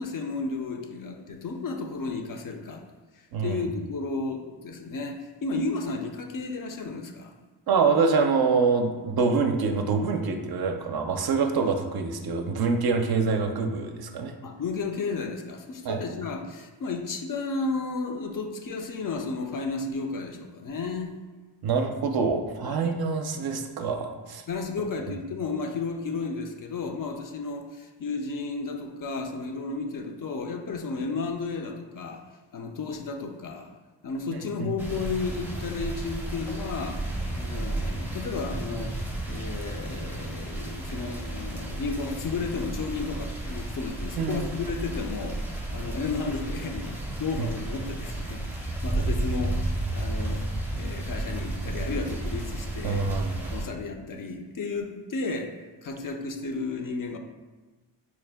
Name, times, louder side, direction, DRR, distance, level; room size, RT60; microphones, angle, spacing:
voice 1, 0.0-2.8 3.4-7.3 14.4-21.2 22.6-22.9 24.5-32.3 32.5-33.7 34.0-37.0 37.3-39.0 39.3-45.4 45.7-50.5 50.7-53.1 53.5-55.6 55.8-57.2, left 4 dB, 45° left, 4 dB, 0.5 m, -33 dB
voice 2, 3.3-3.6 7.7-14.4 15.8-16.0 21.6-24.4 34.6-34.7 44.2-44.5 47.4-47.5 52.8-53.5, right 4 dB, 55° right, 5 dB, 0.5 m, -25 dB
sound 1, 34.8-53.6, right 2 dB, 5° right, 0.6 m, -32 dB
4.3 x 2.1 x 3.4 m, 1.3 s
cardioid pair, 75°, 45 cm